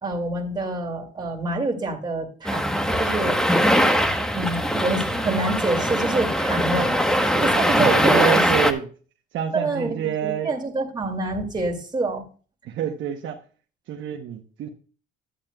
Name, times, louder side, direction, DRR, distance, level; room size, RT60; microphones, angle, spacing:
voice 1, 0.0-3.5 4.3-6.9 7.2-8.4 9.5-12.2, right 2 dB, 20° right, 1 dB, 2.4 m, -27 dB
sound 1, 2.4-8.7, equal, 5° left, 1.1 m, -21 dB
voice 2, 7.7-8.8 9.3-10.5 12.7-13.4 13.9-14.7, right 9 dB, 75° right, 2 dB, 0.9 m, -27 dB
11.5 x 8.8 x 2.3 m, 0.38 s
cardioid pair, 90°, 20 cm